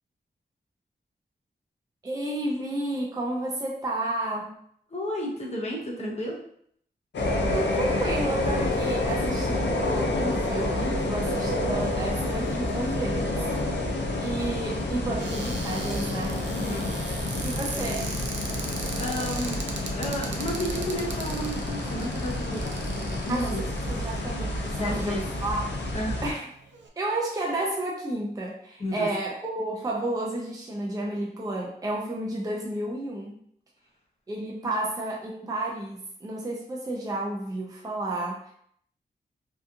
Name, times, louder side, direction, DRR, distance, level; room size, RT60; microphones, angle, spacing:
voice 1, 2.0-4.6 7.5-13.3 13.8-16.4 17.4-18.2 23.3-25.7 26.2-26.4 27.0-33.4 34.3-38.5, right 1 dB, 20° right, -2 dB, 0.4 m, -31 dB
voice 2, 4.9-6.4 16.5-16.9 19.0-19.6 19.9-23.6 24.7-25.2 25.9-26.2 28.8-29.1, equal, 35° left, -2 dB, 0.7 m, -32 dB
sound 1, 7.1-26.3, left 2 dB, 80° left, 0.5 m, -29 dB
Cupboard open or close, 15.2-25.5 26.2-26.3 26.5-26.9, right 4 dB, 85° right, 0.4 m, -39 dB
2.8 x 2.3 x 2.5 m, 0.66 s
wide cardioid pair, 75°, 18 cm